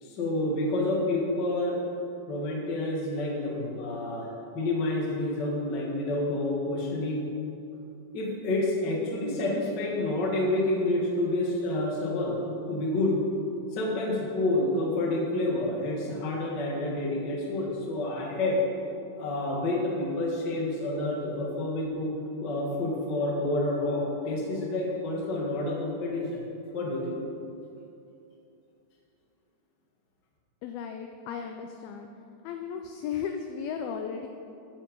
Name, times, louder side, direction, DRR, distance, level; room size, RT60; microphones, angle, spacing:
voice 1, 0.0-1.8 2.3-7.3 8.1-13.2 13.7-18.6 19.2-22.1 22.4-26.4 26.7-27.1, left 2 dB, 60° left, -2 dB, 1.1 m, -29 dB
voice 2, 30.6-32.1 32.4-34.3, left 7 dB, 90° left, 5 dB, 2.1 m, -35 dB
14.0 x 6.1 x 5.2 m, 2.7 s
omnidirectional pair, 4.9 m